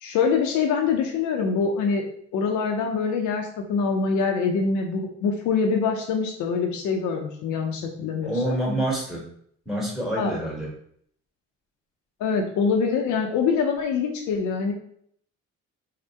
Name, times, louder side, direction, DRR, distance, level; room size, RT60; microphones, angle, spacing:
voice 1, 0.0-8.6 10.2-10.3 12.2-14.7, left 5 dB, 75° left, 1 dB, 0.5 m, -24 dB
voice 2, 8.2-9.2 9.6-10.7, right 1 dB, ahead, -4 dB, 1.2 m, -27 dB
2.7 x 2.1 x 3.3 m, 0.65 s
cardioid pair, 90°, 30 cm